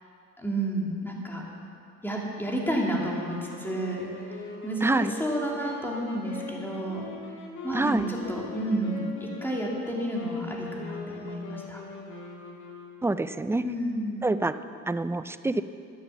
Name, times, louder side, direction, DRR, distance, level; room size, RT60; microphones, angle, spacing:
voice 1, 0.4-1.4 2.0-7.1 7.6-11.8 13.6-14.2, right 1 dB, 5° left, -2 dB, 2.7 m, -31 dB
sound 1, 2.9-13.4, left 4 dB, 70° left, 2.1 m, -41 dB
voice 2, 4.8-5.1 7.7-8.1 13.0-13.6 14.2-14.5 14.9-15.6, right 2 dB, 10° right, 12 dB, 0.4 m, -26 dB
12.5 x 9.0 x 7.2 m, 2.4 s
cardioid pair, 90°, 30 cm